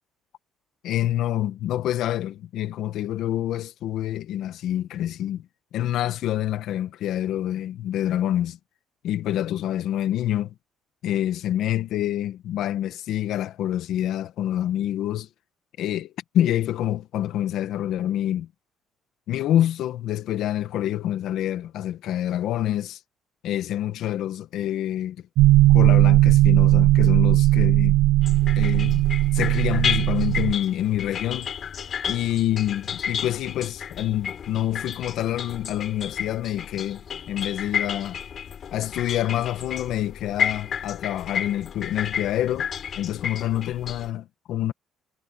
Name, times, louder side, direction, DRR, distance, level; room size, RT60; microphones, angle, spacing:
voice 1, 0.8-5.5 5.7-8.6 9.0-10.5 11.0-15.3 15.8-18.5 19.3-23.0 23.4-25.2 25.7-28.0 28.6-29.1 29.3-31.5 32.1-38.2 38.7-42.7 43.0-44.7, left 12 dB, 65° left, 1.8 m, -27 dB
sound 1, 25.4-30.5, right 17 dB, 90° right, 0.3 m, -17 dB
sound 2, 28.2-44.1, left 8 dB, 40° left, 6.9 m, -32 dB
cardioid pair, 140°, 0 cm